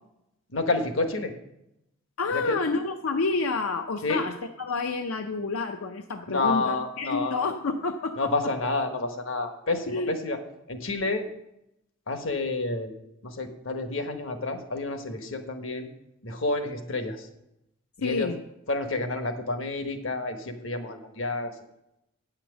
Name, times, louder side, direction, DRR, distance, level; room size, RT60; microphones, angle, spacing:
voice 1, 0.5-1.3 2.3-2.6 4.0-4.2 6.3-7.4 8.2-10.4 10.7-11.3 12.1-12.9 13.2-15.9 16.2-17.3 18.0-18.3 18.7-21.5, left 3 dB, 65° left, 7 dB, 1.1 m, -29 dB
voice 2, 2.2-8.3 9.9-10.1 18.0-18.4, left 3 dB, 85° left, 6 dB, 0.6 m, -29 dB
9.2 x 5.8 x 6.9 m, 0.84 s
head